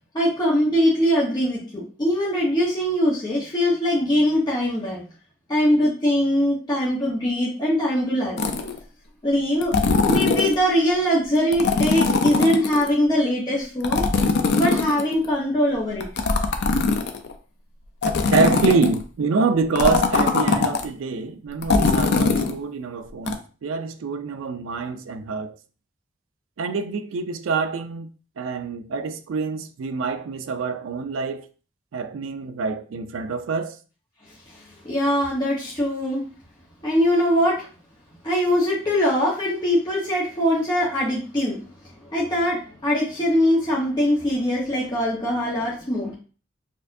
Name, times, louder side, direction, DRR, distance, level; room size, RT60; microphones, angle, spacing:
voice 1, 0.1-5.0 5.5-8.4 9.2-9.7 10.0-14.0 14.6-16.1 34.5-36.2 36.8-37.7 38.2-41.6 42.1-46.1, equal, 20° left, 1.0 m, -22 dB
sound 1, 8.4-8.8 9.6-10.6 11.5-12.9 13.8-15.3 16.0-17.3 18.0-19.0 19.8-20.8 21.6-22.5 23.3-23.4, left 4 dB, 60° left, 0.5 m, -21 dB
voice 2, 18.3-25.6 26.6-28.1 28.4-31.5 31.9-33.8, right 4 dB, 80° right, 0.4 m, -26 dB
4.3 x 2.6 x 2.6 m
head